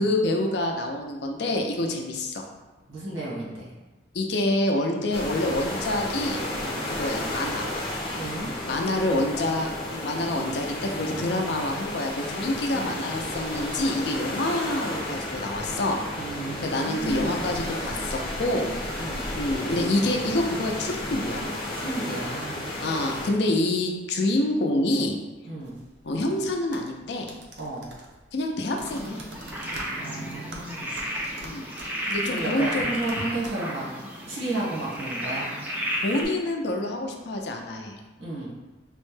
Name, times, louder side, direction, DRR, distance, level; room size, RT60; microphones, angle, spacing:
voice 1, 0.0-2.5 4.1-6.4 6.8-7.7 8.6-16.0 16.6-21.5 22.8-25.2 26.0-27.3 28.3-29.2 31.4-31.7 32.1-32.9 36.0-38.0, left 1 dB, 60° left, 2 dB, 0.4 m, -27 dB
voice 2, 2.9-3.7 8.1-8.5 12.7-12.9 16.2-17.9 19.0-19.2 21.7-22.7 25.5-25.8 27.6-27.9 30.0-31.0 32.3-33.9 34.3-35.5 38.2-38.5, right 2 dB, 85° right, -6 dB, 1.4 m, -33 dB
sound 1, 5.1-23.3, left 1 dB, 30° left, 0.7 m, -33 dB
sound 2, 25.6-33.5, right 2 dB, 65° right, 0.5 m, -46 dB
sound 3, 28.8-36.2, equal, 10° right, 0.4 m, -33 dB
4.2 x 2.1 x 3.2 m, 1.2 s
head